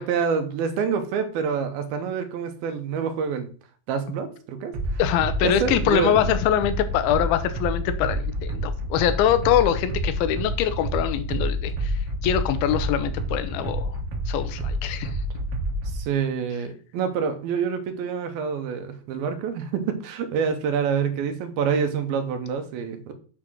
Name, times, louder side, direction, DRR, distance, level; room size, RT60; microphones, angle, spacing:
voice 1, 0.0-3.5 3.9-5.0 5.4-6.3 15.9-23.1, right 6 dB, 80° right, 7 dB, 2.8 m, -27 dB
sound 1, 4.7-16.0, right 1 dB, 50° right, 2.1 m, -29 dB
voice 2, 5.0-14.0 14.3-15.1, left 10 dB, 85° left, 11 dB, 2.6 m, -24 dB
8.7 x 4.0 x 6.2 m, 0.40 s
omnidirectional pair, 4.4 m